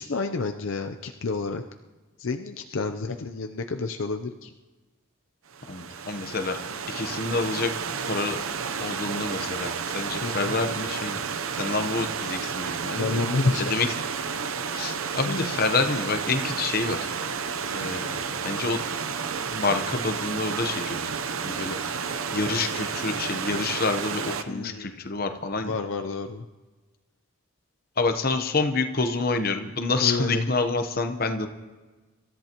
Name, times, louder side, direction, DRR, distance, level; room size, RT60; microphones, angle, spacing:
voice 1, 0.0-1.6 2.2-4.5 10.2-10.5 12.9-13.7 15.3-15.5 24.5-25.0 25.6-26.5 30.0-30.5, left 3 dB, 65° left, 6 dB, 0.6 m, -29 dB
Stream / Liquid, 5.5-24.4, right 6 dB, 70° right, 0.7 m, -31 dB
voice 2, 5.7-6.6 6.9-7.7 8.1-8.4 8.8-11.2 11.5-13.2 13.7-13.9 14.5-17.1 17.7-18.2 18.4-18.8 19.5-21.2 21.4-22.0 22.3-25.7 28.0-31.5, left 3 dB, 45° left, 7 dB, 0.9 m, -28 dB
26.0 x 13.5 x 3.0 m, 1.3 s
head